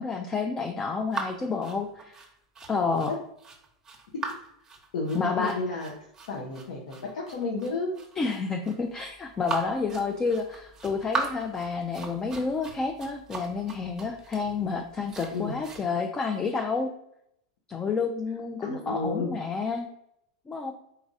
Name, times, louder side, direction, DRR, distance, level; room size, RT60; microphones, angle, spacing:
voice 1, 0.0-2.2 2.7-3.1 5.1-5.6 8.2-16.9 17.7-19.9 20.5-20.7, left 4 dB, 20° left, 4 dB, 0.4 m, -29 dB
sound 1, 1.1-15.8, right 4 dB, 20° right, 0.9 m, -39 dB
voice 2, 4.9-5.9 6.3-8.0 15.3-15.6 18.6-19.4, left 3 dB, 75° left, -1 dB, 0.8 m, -32 dB
4.1 x 4.0 x 2.4 m, 0.75 s
hypercardioid pair, 110°, 3 cm